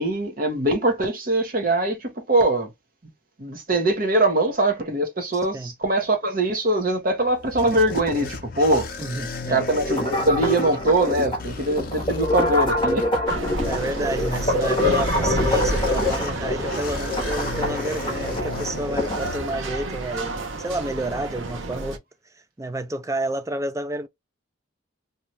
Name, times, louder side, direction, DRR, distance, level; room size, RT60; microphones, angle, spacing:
voice 1, 0.0-2.7 3.4-8.9 9.5-13.1, right 1 dB, 45° right, 0.8 m, -22 dB
sound 1, 7.0-20.0, left 4 dB, 45° left, 0.6 m, -35 dB
voice 2, 9.0-9.6 13.7-22.0 22.6-24.1, right 1 dB, 15° right, 0.3 m, -30 dB
sound 2, 9.7-19.3, left 1 dB, 25° left, 1.0 m, -26 dB
sound 3, 13.3-22.0, right 2 dB, 85° right, 0.8 m, -30 dB
2.8 x 2.3 x 3.0 m
head